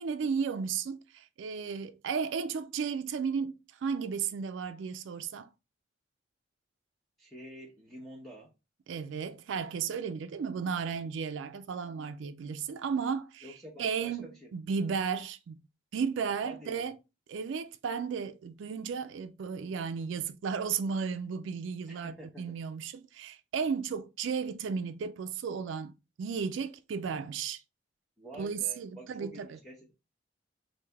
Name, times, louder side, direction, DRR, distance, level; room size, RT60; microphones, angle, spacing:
voice 1, 0.0-5.5 8.9-15.5 15.9-17.0 17.3-25.9 26.2-27.6 28.4-29.6, right 6 dB, 70° right, 0.3 m, -34 dB
voice 2, 7.2-8.5 13.4-14.5 16.4-16.9 21.9-22.5 28.2-29.9, right 1 dB, ahead, 0.7 m, -48 dB
3.3 x 2.7 x 3.3 m
head